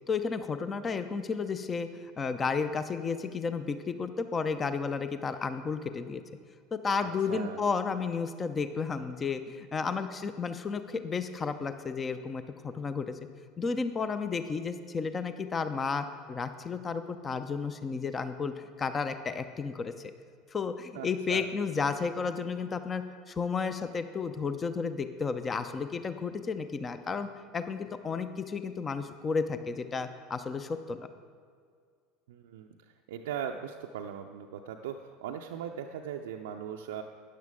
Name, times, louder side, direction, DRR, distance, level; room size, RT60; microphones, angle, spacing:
voice 1, 0.1-6.2 6.7-13.2 13.6-20.1 20.5-31.0, left 5 dB, 25° left, 10 dB, 0.6 m, -32 dB
voice 2, 7.0-7.7 20.9-21.4 32.3-37.0, right 8 dB, 65° right, 1 dB, 0.5 m, -39 dB
13.0 x 10.0 x 3.7 m, 2.1 s
figure-of-eight pair, 75°, 0 cm